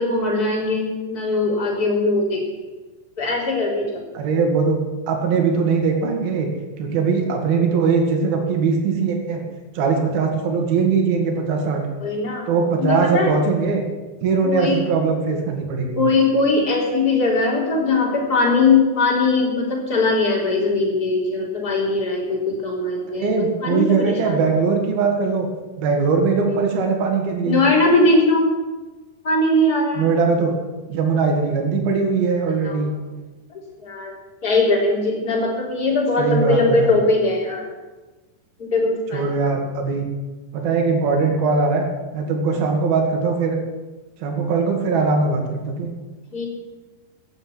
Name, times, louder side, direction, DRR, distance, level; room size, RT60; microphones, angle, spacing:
voice 1, 0.0-2.6 3.2-4.1 12.0-12.4 12.8-13.3 14.4-14.8 16.0-24.4 26.4-26.9 27.4-28.5 29.2-30.1 32.6-32.8 33.8-34.1 34.4-37.6 38.6-39.2 46.3-46.5, left 2 dB, 25° left, -2 dB, 3.9 m, -20 dB
voice 2, 4.1-4.8 5.1-6.5 6.8-9.4 9.8-11.8 12.5-13.8 14.2-16.0 23.1-25.5 25.8-27.6 30.0-30.5 30.9-32.9 36.2-36.9 39.1-40.1 40.5-41.9 42.1-43.6 44.2-45.9, right 4 dB, 80° right, 2 dB, 3.8 m, -20 dB
15.5 x 8.1 x 9.5 m, 1.2 s
omnidirectional pair, 4.3 m